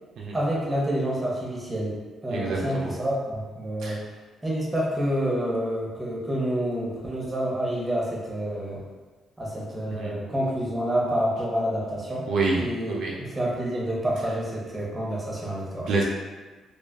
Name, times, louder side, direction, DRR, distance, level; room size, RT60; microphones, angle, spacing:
voice 1, 0.3-4.0 4.4-8.8 9.4-12.3 12.6-12.9 13.3-15.9, equal, 10° right, -5 dB, 0.7 m, -28 dB
voice 2, 2.3-2.9 3.8-4.0 9.9-10.2 12.3-12.6 12.9-13.2 15.9-16.0, right 3 dB, 70° right, -3 dB, 0.4 m, -27 dB
2.4 x 2.3 x 2.3 m, 1.3 s
cardioid pair, 90°, 0 cm